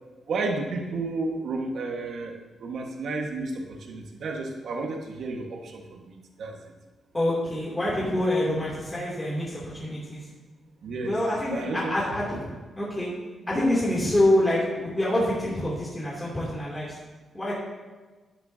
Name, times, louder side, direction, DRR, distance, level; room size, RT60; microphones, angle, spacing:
voice 1, 0.3-6.6 10.8-11.2 11.5-12.2, right 3 dB, 70° right, 2 dB, 1.6 m, -32 dB
voice 2, 7.1-10.3 11.0-13.1 13.5-17.0 17.3-17.5, left 1 dB, 20° left, -7 dB, 3.0 m, -26 dB
11.5 x 11.0 x 2.9 m, 1.3 s
cardioid pair, 100°, 0 cm